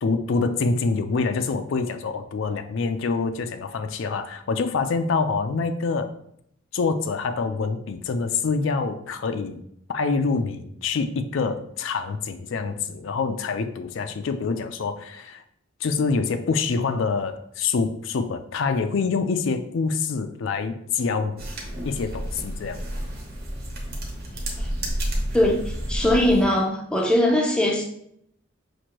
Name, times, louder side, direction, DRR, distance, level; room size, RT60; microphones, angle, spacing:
voice 1, 0.0-6.1 6.7-9.6 9.9-15.4 15.8-21.4 21.8-22.8, left 4 dB, 70° left, 0.4 m, -26 dB
sound 1, 21.4-26.4, right 1 dB, 50° right, 1.0 m, -30 dB
voice 2, 25.3-27.8, left 1 dB, 5° left, 0.5 m, -21 dB
6.0 x 2.6 x 2.9 m
head